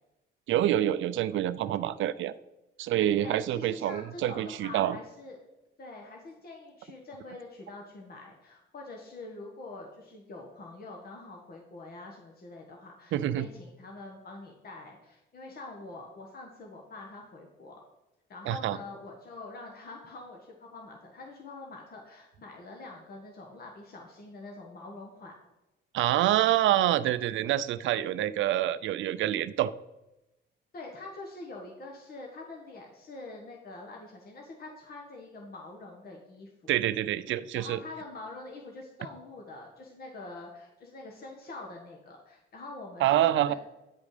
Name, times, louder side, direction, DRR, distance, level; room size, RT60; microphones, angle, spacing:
voice 1, 0.5-2.3 2.8-5.0 13.1-13.5 18.5-18.8 25.9-29.7 36.7-37.8 43.0-43.5, right 12 dB, 75° right, 14 dB, 0.5 m, -26 dB
voice 2, 3.2-5.4 5.8-17.8 18.3-25.3 30.7-36.7 37.5-43.5, left 2 dB, 50° left, 0 dB, 1.5 m, -45 dB
9.4 x 5.2 x 4.9 m, 0.97 s
cardioid pair, 90°, 20 cm